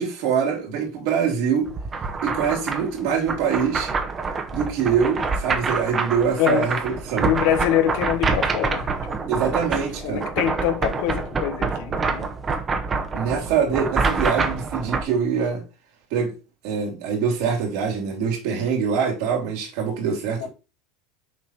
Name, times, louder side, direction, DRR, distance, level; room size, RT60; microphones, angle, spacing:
voice 1, 0.0-1.7 2.2-3.9 4.5-7.3 9.3-10.3 13.1-15.6 16.1-16.3 16.6-20.5, right 6 dB, 65° right, 3.2 m, -24 dB
sound 1, 1.7-15.0, right 4 dB, 25° right, 1.3 m, -26 dB
voice 2, 7.2-8.9 10.0-12.3 20.4-20.5, left 11 dB, 65° left, 1.1 m, -24 dB
6.8 x 4.3 x 4.5 m
supercardioid pair, 110°, 0 cm